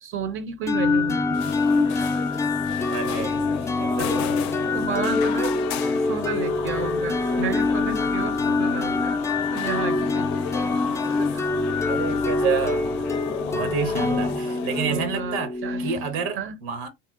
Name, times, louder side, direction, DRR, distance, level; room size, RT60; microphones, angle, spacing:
voice 1, 0.0-2.4 3.4-3.7 4.0-4.3 4.7-5.6 5.9-9.2 9.5-11.5 12.4-12.5 13.6-13.8 14.9-16.0 16.4-16.6, right 6 dB, 45° right, 0.6 m, -33 dB
sound 1, 0.7-16.3, left 3 dB, 10° left, 0.3 m, -25 dB
sound 2, 1.3-14.8, left 10 dB, 80° left, 0.5 m, -35 dB
voice 2, 2.9-4.1 11.9-13.0 13.4-16.9, right 6 dB, 75° right, 1.0 m, -29 dB
2.8 x 2.0 x 2.3 m
supercardioid pair, 85°, 31 cm